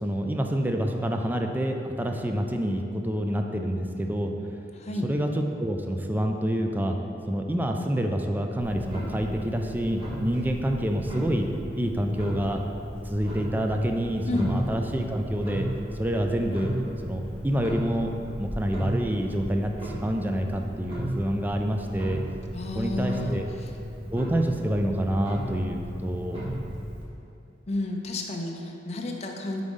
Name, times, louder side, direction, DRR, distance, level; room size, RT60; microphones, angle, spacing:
voice 1, 0.0-4.3 5.0-7.0 7.3-11.5 11.8-12.6 13.0-15.7 16.0-16.7 17.0-22.2 22.8-23.4 24.1-26.6, right 1 dB, 10° right, 3 dB, 0.4 m, -27 dB
voice 2, 4.7-5.1 14.3-14.5 22.5-23.7 27.7-29.6, left 2 dB, 35° left, 1 dB, 0.6 m, -31 dB
Clock, 8.6-27.0, equal, 30° right, 1.4 m, -35 dB
5.0 x 4.0 x 5.3 m, 2.7 s
head